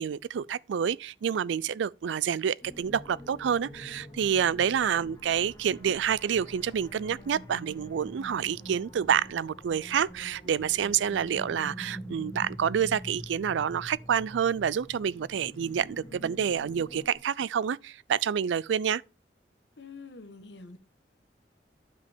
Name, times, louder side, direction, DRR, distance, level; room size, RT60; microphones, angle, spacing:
voice 1, 0.0-19.0, right 8 dB, 85° right, 0.4 m, -28 dB
sound 1, 2.6-17.2, equal, 20° left, 1.5 m, -45 dB
voice 2, 19.8-20.8, left 4 dB, 70° left, 1.2 m, -46 dB
12.0 x 5.2 x 3.6 m
head